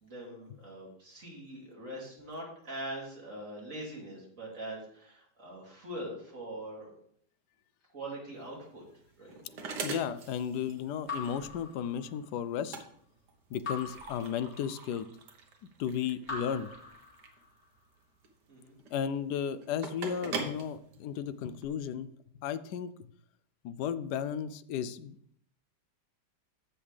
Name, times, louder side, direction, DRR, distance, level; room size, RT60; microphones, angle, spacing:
voice 1, 0.0-6.9 7.9-8.8 9.2-9.4 18.5-18.8, right 1 dB, 45° right, -3 dB, 3.1 m, -42 dB
sound 1, 8.4-21.7, right 4 dB, 70° right, 1.7 m, -43 dB
voice 2, 9.8-12.8 13.5-15.1 15.8-16.7 18.9-22.1 22.4-22.9 23.6-25.2, left 8 dB, 75° left, 14 dB, 1.1 m, -34 dB
Raindrop / Drip, 11.1-12.4 13.6-15.0 16.2-17.6, left 4 dB, 35° left, 2.8 m, -42 dB
14.5 x 5.6 x 3.3 m, 0.66 s
omnidirectional pair, 1.9 m